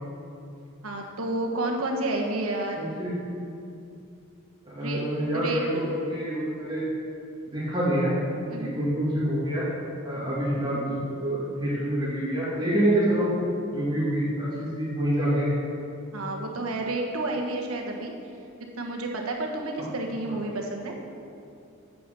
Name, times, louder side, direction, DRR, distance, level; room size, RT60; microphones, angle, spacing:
voice 1, 0.8-3.0 4.8-5.0 5.3-5.9 8.5-8.8 16.1-18.1 18.8-20.9, right 2 dB, 90° right, 1 dB, 1.4 m, -30 dB
voice 2, 2.8-3.1 4.6-6.8 7.5-8.1 8.6-9.6 10.0-13.3 13.7-15.5 19.8-19.9 20.3-20.4, right 1 dB, 20° right, -10 dB, 2.3 m, -27 dB
8.9 x 7.7 x 6.7 m, 2.6 s
head